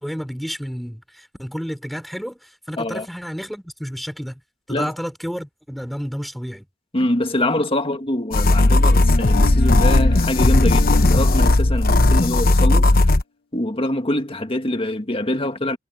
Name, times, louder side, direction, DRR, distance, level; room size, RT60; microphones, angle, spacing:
voice 1, 0.0-4.4 4.7-6.7 11.8-12.5, equal, ahead, 3.6 m, -31 dB
voice 2, 6.9-13.1 13.5-15.8, left 1 dB, 30° left, 1.8 m, -24 dB
sound 1, 8.3-13.2, left 2 dB, 50° left, 0.9 m, -15 dB
head